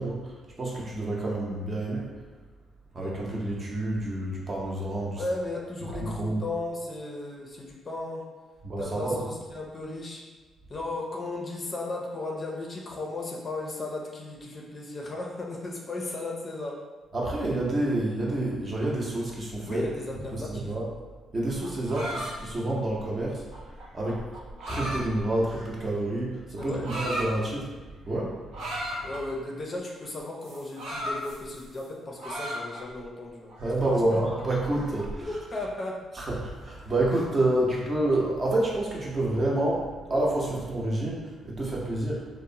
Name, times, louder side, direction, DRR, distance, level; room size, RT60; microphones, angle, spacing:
voice 1, 0.0-2.1 2.9-5.3 5.9-6.4 8.6-9.2 17.1-19.9 20.1-20.9 21.3-23.4 23.9-24.3 24.7-28.7 33.6-35.7 36.1-42.3, right 1 dB, 35° right, -3 dB, 0.7 m, -28 dB
voice 2, 5.2-8.3 8.8-10.3 10.7-16.8 19.7-20.7 26.6-26.9 29.0-33.5 33.9-34.0 35.2-36.1, left 2 dB, 35° left, -1 dB, 0.5 m, -35 dB
sound 1, 21.4-25.9 26.6-27.3 28.5-29.2 30.4-31.9 32.2-33.0 33.5-35.2, equal, 90° right, 0.7 m, -36 dB
2.9 x 2.0 x 2.7 m, 1.3 s
cardioid pair, 90°, 0 cm